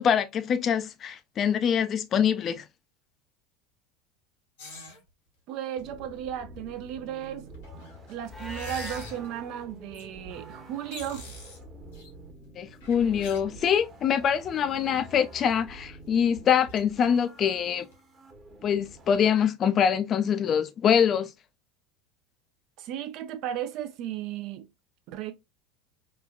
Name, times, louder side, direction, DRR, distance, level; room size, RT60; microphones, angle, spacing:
voice 1, 0.0-2.6 12.6-17.9 18.6-21.3, left 8 dB, 40° left, 0.4 m, -24 dB
sound 1, 4.6-5.0 5.8-5.9 6.8-6.9 7.2-9.3 9.9-10.1 10.5-10.6 10.7-12.1 12.7-13.9 14.3-14.4 14.6-14.7 15.7-15.8 16.0-16.1 16.4-16.8 17.2-17.6 17.9-18.0, left 1 dB, 75° left, 1.1 m, -44 dB
voice 2, 5.5-7.4 8.1-11.3 22.8-24.7 25.1-25.3, right 10 dB, 55° right, 0.4 m, -35 dB
sound 2, 5.8-19.2, right 1 dB, 30° right, 0.9 m, -48 dB
Livestock farm animals working animals, 8.2-9.1, equal, 5° right, 0.8 m, -39 dB
3.1 x 2.2 x 2.2 m
hypercardioid pair, 75°, 0 cm